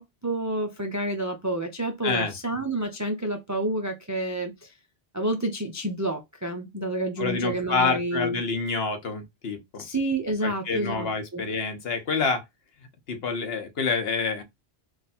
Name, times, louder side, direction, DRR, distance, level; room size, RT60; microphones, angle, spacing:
voice 1, 0.0-4.7 5.1-8.4 9.8-11.4, right 1 dB, 30° right, 0.3 m, -29 dB
voice 2, 2.0-2.3 7.2-9.8 10.4-12.4 13.1-14.4, left 4 dB, 65° left, 1.1 m, -27 dB
3.3 x 2.4 x 4.1 m
omnidirectional pair, 1.1 m